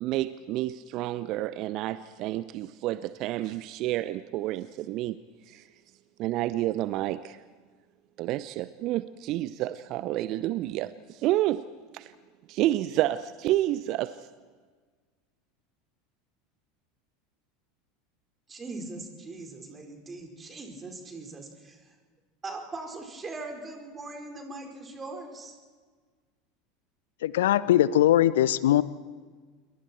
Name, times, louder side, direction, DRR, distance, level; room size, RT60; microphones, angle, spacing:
voice 1, 0.0-5.2 5.5-5.6 6.2-7.4 8.2-11.7 11.9-12.1 12.5-14.1, right 15 dB, 45° right, 15 dB, 0.7 m, -29 dB
voice 2, 18.5-21.8 22.4-25.5, right 3 dB, 20° right, 2 dB, 4.9 m, -40 dB
voice 3, 27.2-28.8, left 12 dB, 65° left, 18 dB, 0.7 m, -21 dB
28.0 x 23.0 x 4.5 m, 1.5 s
figure-of-eight pair, 75°, 0 cm